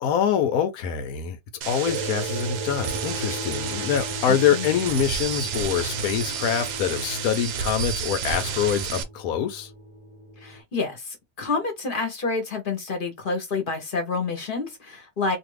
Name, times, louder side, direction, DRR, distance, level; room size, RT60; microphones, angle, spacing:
voice 1, 0.0-1.4 1.7-9.7, left 8 dB, 85° left, 1.1 m, -25 dB
sound 1, 1.6-9.0, right 7 dB, 75° right, 1.0 m, -31 dB
sound 2, 1.9-10.6, right 1 dB, 30° right, 0.6 m, -37 dB
voice 2, 4.3-4.8 10.4-15.4, left 4 dB, 40° left, 0.9 m, -28 dB
2.6 x 2.5 x 3.1 m
omnidirectional pair, 1.5 m